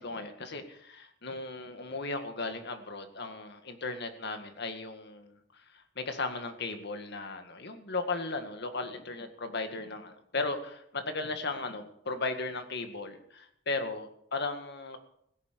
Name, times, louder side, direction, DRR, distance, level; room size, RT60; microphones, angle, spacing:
voice 1, 0.0-15.0, left 3 dB, 60° left, 7 dB, 1.9 m, -36 dB
16.5 x 9.7 x 6.8 m, 0.72 s
head